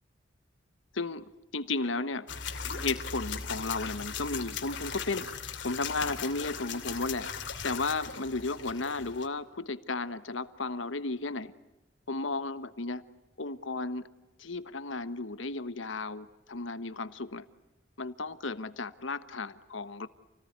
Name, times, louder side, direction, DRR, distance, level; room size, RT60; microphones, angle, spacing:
voice 1, 0.9-1.2 1.5-2.3 2.7-5.3 5.6-7.3 7.6-11.5 12.1-13.0 13.4-14.1 14.4-17.5 18.0-20.1, left 3 dB, 85° left, 1.3 m, -34 dB
sound 1, 2.3-9.3, left 6 dB, 65° left, 2.8 m, -38 dB
29.0 x 19.0 x 9.6 m
head